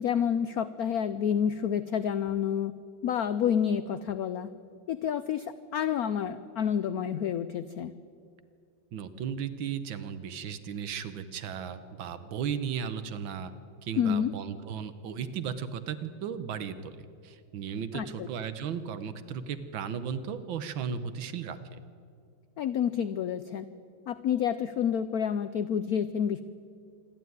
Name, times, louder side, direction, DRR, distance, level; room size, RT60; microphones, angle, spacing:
voice 1, 0.0-2.7 3.0-4.5 4.9-7.9 14.0-14.3 17.9-18.3 22.6-23.7 24.1-26.4, left 8 dB, 85° left, 13 dB, 0.8 m, -29 dB
voice 2, 8.9-13.5 13.8-21.8, right 7 dB, 70° right, 12 dB, 1.7 m, -35 dB
26.5 x 11.5 x 9.4 m, 2.3 s
omnidirectional pair, 2.3 m